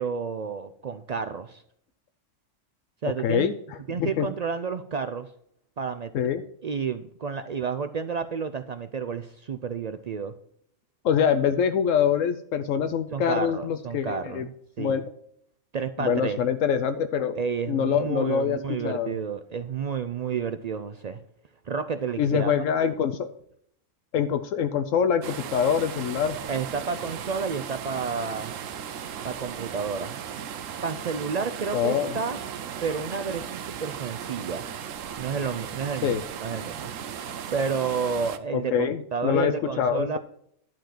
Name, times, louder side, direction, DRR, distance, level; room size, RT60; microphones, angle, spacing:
voice 1, 0.0-1.6 3.0-3.5 3.9-5.3 5.8-6.1 6.6-10.3 13.1-15.0 15.7-16.4 17.3-21.2 21.7-22.5 26.5-28.5 29.2-30.2 30.8-32.4 32.8-34.6 35.2-36.1 36.4-36.9 37.5-40.2, right 5 dB, 70° right, 10 dB, 0.3 m, -30 dB
voice 2, 3.2-4.3 6.1-6.4 11.0-14.5 14.8-15.0 16.0-17.4 17.7-19.1 22.2-23.3 24.1-26.4 31.7-32.1 36.0-36.2 38.5-40.2, left 8 dB, 80° left, 9 dB, 1.0 m, -25 dB
sound 1, 25.2-38.4, right 8 dB, 85° right, 1.1 m, -36 dB
11.5 x 4.5 x 7.6 m, 0.70 s
omnidirectional pair, 1.3 m